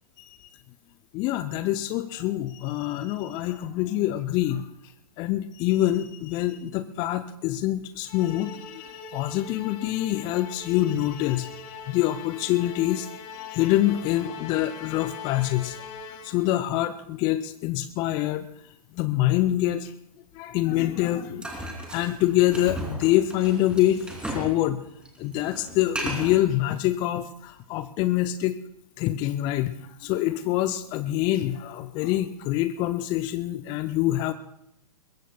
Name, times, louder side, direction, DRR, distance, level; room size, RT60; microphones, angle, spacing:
voice 1, 1.1-4.7 5.2-13.1 13.4-15.8 16.2-18.5 18.9-19.9 20.3-24.8 25.2-28.6 29.0-34.3, left 14 dB, 20° left, 12 dB, 0.5 m, -25 dB
Musical instrument, 8.0-16.6, left 6 dB, 35° left, 1.8 m, -41 dB
sound 1, 21.4-24.6 24.8-26.4, right 1 dB, 5° right, 2.9 m, -35 dB
22.0 x 21.5 x 2.3 m, 0.76 s
figure-of-eight pair, 115°, 20 cm